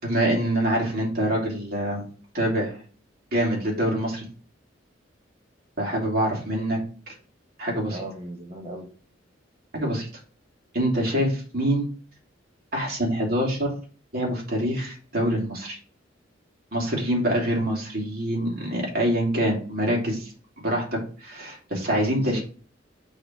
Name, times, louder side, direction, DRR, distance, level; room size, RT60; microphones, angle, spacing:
voice 1, 0.0-2.0 2.3-2.7 3.3-4.3 5.8-7.1 7.6-8.0 9.7-10.1 10.7-11.9 12.7-13.7 14.1-15.8 16.7-20.3 20.6-22.4, right 1 dB, 50° right, -1 dB, 2.9 m, -25 dB
voice 2, 7.9-8.9 22.2-22.4, right 1 dB, 30° right, 3 dB, 1.3 m, -36 dB
6.8 x 4.2 x 4.6 m, 0.39 s
head